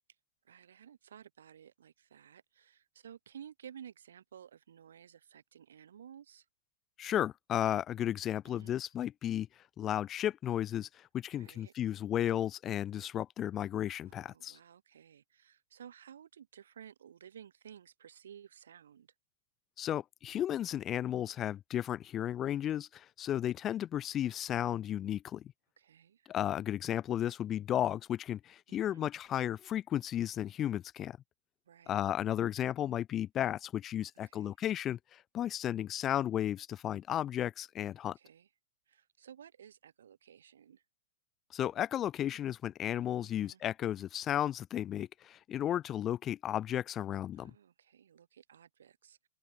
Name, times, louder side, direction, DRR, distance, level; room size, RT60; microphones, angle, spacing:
voice 1, 0.4-6.5 8.4-8.8 11.3-11.7 14.0-19.1 25.8-26.3 28.7-29.1 31.7-32.1 34.3-34.5 38.0-38.5 38.9-40.8 43.2-43.6 47.3-49.3, right 9 dB, 90° right, 4.0 m, -55 dB
voice 2, 7.0-9.5 9.8-14.6 19.8-25.4 26.3-31.2 31.9-38.2 41.5-47.5, left 11 dB, 20° left, 0.6 m, -34 dB
hypercardioid pair, 160°, 0 cm